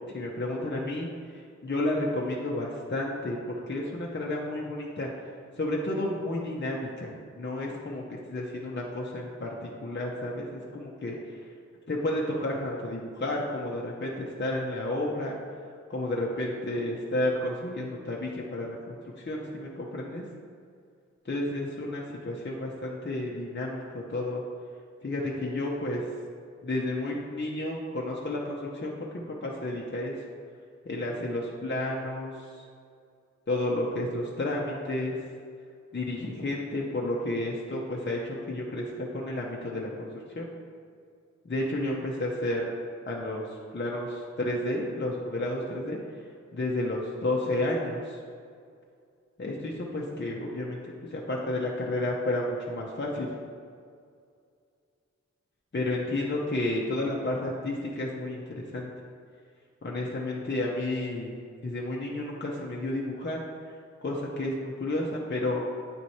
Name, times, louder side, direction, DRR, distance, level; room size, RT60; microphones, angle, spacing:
voice 1, 0.1-5.1 5.6-11.5 11.9-15.4 15.9-20.3 21.2-24.4 25.0-26.1 26.6-30.2 30.9-32.6 33.5-35.2 35.9-40.5 41.4-42.8 43.1-46.0 46.5-48.2 49.4-53.3 55.7-58.9 59.8-61.4 61.6-63.4 64.0-65.6, left 1 dB, 40° left, -3 dB, 0.8 m, -31 dB
8.9 x 3.1 x 4.1 m, 2.3 s
wide cardioid pair, 50°, 29 cm